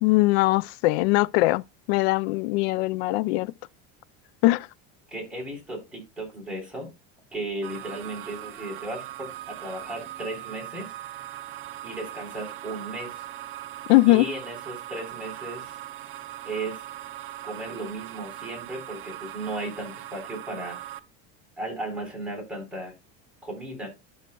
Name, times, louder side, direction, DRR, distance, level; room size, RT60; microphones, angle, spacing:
voice 1, 0.0-1.6 1.9-3.5 4.4-4.7 13.9-14.3, left 19 dB, 80° left, 0.5 m, -21 dB
voice 2, 5.1-6.9 7.3-10.9 11.8-13.2 14.1-15.8 16.4-16.8 17.4-20.8 21.6-22.9 23.4-23.9, right 2 dB, 5° right, 3.8 m, -35 dB
sound 1, 7.6-21.0, right 13 dB, 35° right, 0.6 m, -40 dB
12.0 x 6.4 x 2.3 m
cardioid pair, 155°, 32 cm